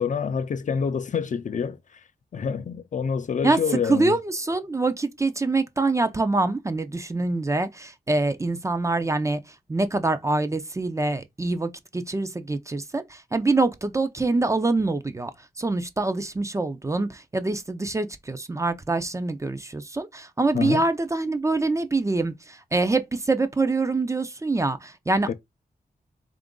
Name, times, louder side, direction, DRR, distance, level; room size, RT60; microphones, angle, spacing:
voice 1, 0.0-1.8 2.3-4.2 20.5-20.9 25.3-25.4, left 6 dB, 55° left, 0.4 m, -27 dB
voice 2, 3.9-9.4 9.7-15.3 15.6-25.3, right 3 dB, 20° right, 0.4 m, -25 dB
3.8 x 2.5 x 3.6 m
wide cardioid pair, 145°, 16 cm